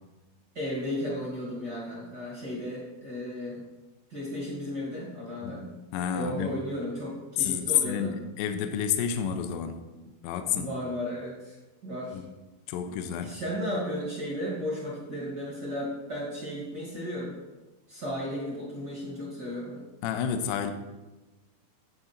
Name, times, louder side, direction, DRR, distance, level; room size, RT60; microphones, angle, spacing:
voice 1, 0.5-3.6 4.1-5.7 6.1-8.2 10.5-11.6 11.8-12.2 13.2-17.3 17.9-19.8, equal, 35° right, -5 dB, 1.7 m, -34 dB
voice 2, 5.9-6.6 7.4-9.8 10.2-10.7 12.1-12.3 12.7-13.4 20.0-20.7, left 9 dB, 85° left, 7 dB, 2.8 m, -29 dB
10.0 x 7.8 x 4.3 m, 1.1 s
omnidirectional pair, 5.2 m